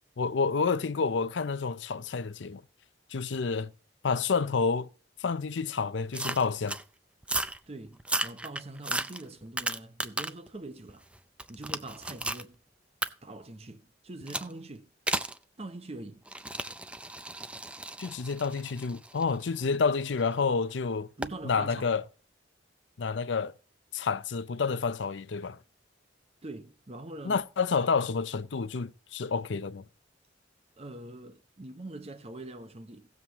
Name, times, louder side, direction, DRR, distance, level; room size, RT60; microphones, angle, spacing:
voice 1, 0.2-2.6 3.1-3.7 4.0-4.9 5.2-6.8 18.0-21.1 21.4-22.0 23.0-23.5 23.9-25.6 27.2-29.8, left 5 dB, 70° left, 0.5 m, -29 dB
sound 1, 6.1-6.8 7.2-7.6 8.0-10.5 10.9-12.5 13.0-13.1 14.3-14.5 15.1-15.4 16.3-20.2 21.2-21.4, right 2 dB, 5° right, 0.4 m, -34 dB
voice 2, 7.7-11.1 11.5-12.6 13.2-14.9 15.6-16.2 21.2-21.9 26.4-27.4 30.8-33.1, right 2 dB, 35° right, 0.8 m, -43 dB
17.0 x 7.4 x 3.0 m
head